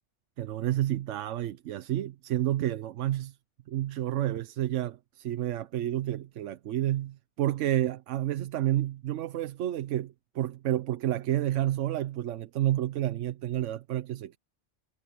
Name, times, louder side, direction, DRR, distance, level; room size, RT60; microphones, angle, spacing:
voice 1, 0.4-3.4 3.7-14.4, right 13 dB, 85° right, 1.0 m, -30 dB
omnidirectional pair, 1.2 m